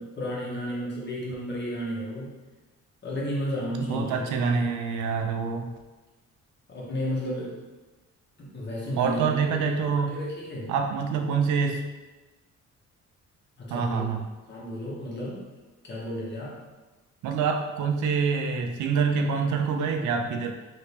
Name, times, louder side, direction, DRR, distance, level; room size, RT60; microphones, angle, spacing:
voice 1, 0.0-2.3 3.0-4.2 4.5-4.6 6.7-7.6 8.4-10.7 13.6-14.0 14.5-15.4 15.8-16.6, equal, 35° left, -6 dB, 1.2 m, -33 dB
voice 2, 3.8-5.8 9.0-10.2 10.7-11.8 13.7-14.2 17.2-20.5, right 5 dB, 75° right, 4 dB, 0.5 m, -26 dB
2.9 x 2.8 x 3.3 m, 1.2 s
cardioid pair, 90°, 30 cm